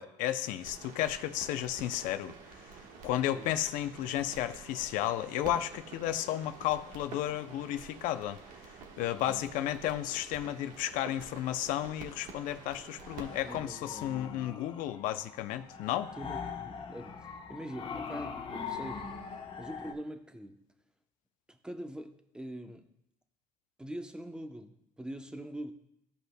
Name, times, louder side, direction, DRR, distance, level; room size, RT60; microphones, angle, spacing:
voice 1, 0.0-2.3 3.0-8.4 9.0-16.1, left 12 dB, 75° left, 0.5 m, -33 dB
sound 1, 0.6-13.6, right 5 dB, 70° right, 1.3 m, -49 dB
voice 2, 9.1-9.4 13.4-14.6 16.2-20.6 21.5-22.8 23.8-25.7, right 1 dB, 5° right, 0.7 m, -44 dB
sound 2, 13.0-19.9, left 6 dB, 40° left, 1.0 m, -42 dB
15.0 x 5.4 x 2.2 m
cardioid pair, 105°, 14 cm